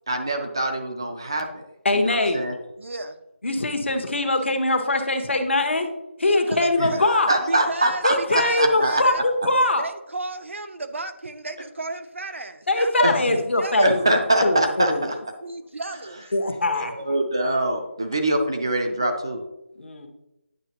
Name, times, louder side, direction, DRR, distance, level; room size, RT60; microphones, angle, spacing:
voice 1, 0.1-1.6 1.9-2.5 6.8-9.0 13.0-13.4 13.8-15.1 16.7-19.4, right 1 dB, 20° right, 5 dB, 0.4 m, -24 dB
voice 2, 1.8-2.4 3.4-5.9 6.2-7.3 8.0-9.8 12.7-14.1 14.4-15.1 16.3-17.1 19.8-20.1, left 2 dB, 65° left, 4 dB, 1.1 m, -22 dB
voice 3, 2.8-3.2 6.2-7.0 7.4-9.2 9.8-13.9 15.4-16.3, right 2 dB, 70° right, 9 dB, 0.7 m, -34 dB
9.0 x 6.0 x 2.9 m, 0.93 s
figure-of-eight pair, 180°, 7 cm